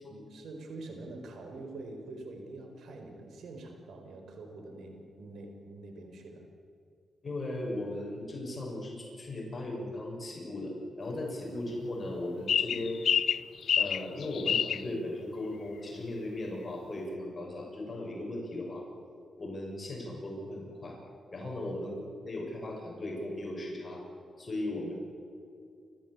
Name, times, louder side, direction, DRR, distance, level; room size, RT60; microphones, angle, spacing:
voice 1, 0.0-6.5 11.1-11.2 21.4-21.5, right 2 dB, 80° right, 4 dB, 4.7 m, -45 dB
voice 2, 7.2-13.0 13.8-18.9 19.4-21.0 21.3-24.0 24.4-24.9, left 1 dB, 35° left, -1 dB, 7.0 m, -37 dB
sound 1, 12.5-14.8, left 8 dB, 75° left, 0.5 m, -27 dB
29.5 x 14.5 x 8.5 m, 2.5 s
cardioid pair, 90°, 0 cm